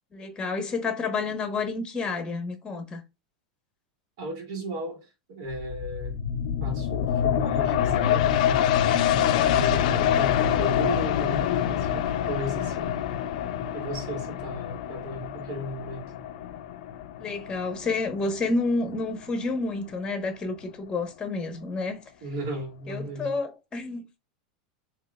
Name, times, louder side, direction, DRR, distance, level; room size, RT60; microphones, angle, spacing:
voice 1, 0.1-3.0 9.6-9.7 17.2-22.0 22.9-24.0, left 3 dB, 20° left, 0.9 m, -30 dB
voice 2, 4.2-6.1 6.6-8.8 9.5-13.0 13.7-16.1 22.2-23.3, right 1 dB, 65° right, 1.8 m, -35 dB
sound 1, 5.5-18.8 19.2-19.3, left 9 dB, 70° left, 0.4 m, -26 dB
3.7 x 2.9 x 2.2 m
supercardioid pair, 120°, 4 cm